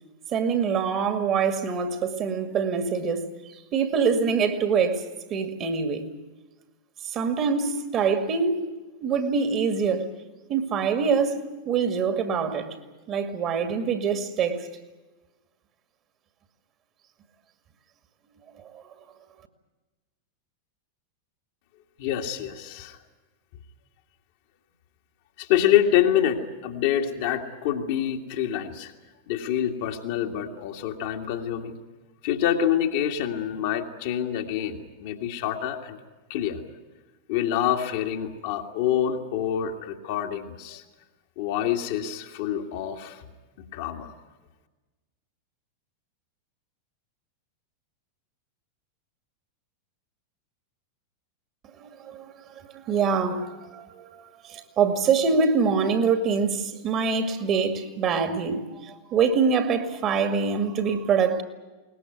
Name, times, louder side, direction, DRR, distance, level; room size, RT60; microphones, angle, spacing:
voice 1, 0.3-3.3 3.7-6.0 7.0-8.6 9.0-10.1 10.5-12.7 13.1-14.7 18.6-18.8 51.8-61.4, right 5 dB, 30° right, 2.2 m, -25 dB
voice 2, 22.0-23.0 25.4-28.9 29.3-31.8 32.2-36.0 36.3-36.6 37.3-40.8 41.4-43.2 43.6-44.1, left 10 dB, 50° left, 2.1 m, -26 dB
21.5 x 19.5 x 9.3 m
figure-of-eight pair, 90°, 0 cm